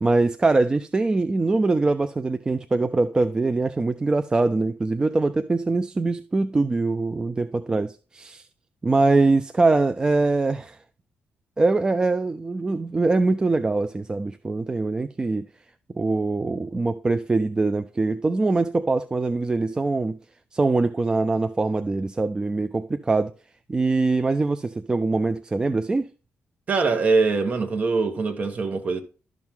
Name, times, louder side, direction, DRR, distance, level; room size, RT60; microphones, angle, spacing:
voice 1, 0.0-8.5 8.8-10.8 11.6-15.5 15.9-20.2 20.5-23.3 23.7-26.1, right 3 dB, 20° right, 0.4 m, -23 dB
voice 2, 26.7-29.0, right 4 dB, 40° right, 1.4 m, -23 dB
12.0 x 6.1 x 3.7 m
cardioid pair, 130°, 4 cm